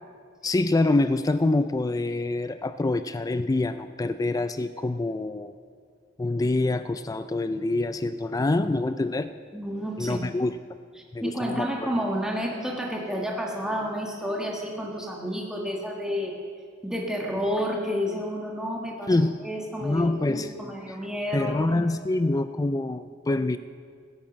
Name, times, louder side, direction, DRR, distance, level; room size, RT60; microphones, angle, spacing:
voice 1, 0.4-5.5 6.2-9.3 10.0-10.5 11.1-11.9 19.1-19.4 19.8-20.5 21.3-23.6, left 2 dB, 20° left, 11 dB, 0.4 m, -25 dB
voice 2, 9.5-10.3 11.2-16.3 16.8-21.6, equal, 5° right, -1 dB, 1.6 m, -30 dB
16.5 x 11.0 x 7.3 m, 2.1 s
head